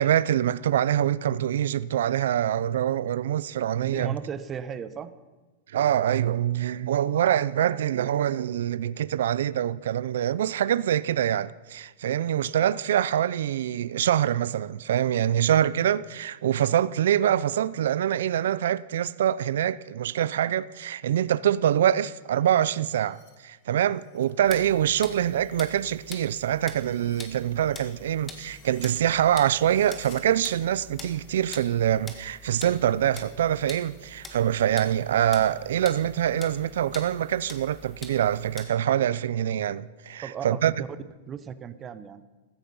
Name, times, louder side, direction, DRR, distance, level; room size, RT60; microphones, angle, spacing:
voice 1, 0.0-4.1 5.7-40.7, right 10 dB, 80° right, 0.4 m, -25 dB
voice 2, 3.8-5.1 40.2-40.9 41.3-42.2, right 7 dB, 20° right, 0.8 m, -35 dB
sound 1, 22.0-24.4 24.7-30.3, left 7 dB, 40° left, 2.5 m, -58 dB
sound 2, 24.4-38.6, left 3 dB, 15° left, 1.6 m, -45 dB
14.5 x 14.5 x 5.5 m
supercardioid pair, 160°, 0 cm